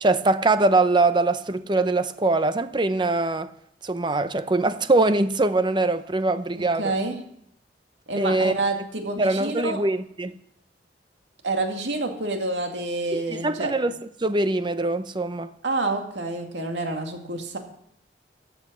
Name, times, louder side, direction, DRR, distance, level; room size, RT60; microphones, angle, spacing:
voice 1, 0.0-3.5 3.8-6.8 8.2-8.5 9.2-10.3 13.1-13.9 14.2-15.5, right 2 dB, 25° right, 0.7 m, -22 dB
voice 2, 6.5-7.2 8.1-9.8 11.4-13.7 15.6-17.6, right 2 dB, 85° right, 2.3 m, -28 dB
14.5 x 8.0 x 6.3 m
head